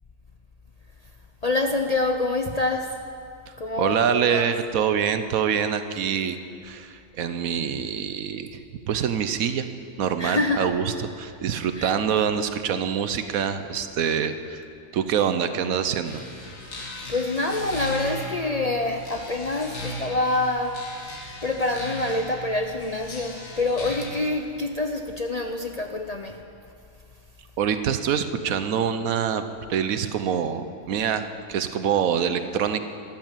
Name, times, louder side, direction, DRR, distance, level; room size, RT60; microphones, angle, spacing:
voice 1, 1.4-3.1 3.6-4.5 10.2-10.7 11.8-11.9 17.1-20.9 21.4-26.4, left 2 dB, 45° left, 5 dB, 0.5 m, -26 dB
voice 2, 3.8-6.4 6.6-8.6 8.9-9.7 10.0-10.8 11.2-14.6 14.9-16.2 27.6-29.4 29.7-32.8, right 8 dB, 85° right, 10 dB, 1.3 m, -25 dB
sound 1, 16.0-24.3, left 1 dB, 70° left, 2.1 m, -37 dB
13.5 x 12.0 x 7.4 m, 2.5 s
omnidirectional pair, 1.4 m